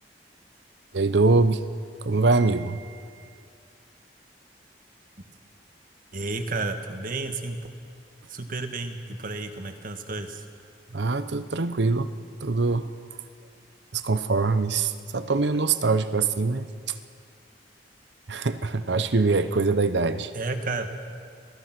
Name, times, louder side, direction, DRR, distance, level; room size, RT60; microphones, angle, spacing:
voice 1, 0.9-1.6 2.0-3.0 10.9-12.1 12.4-12.9 13.9-16.9 18.3-20.3, right 3 dB, 70° right, 12 dB, 0.8 m, -23 dB
voice 2, 6.1-7.6 8.3-10.4 20.3-20.9, right 3 dB, 50° right, 6 dB, 1.6 m, -31 dB
26.5 x 18.0 x 6.0 m, 2.2 s
head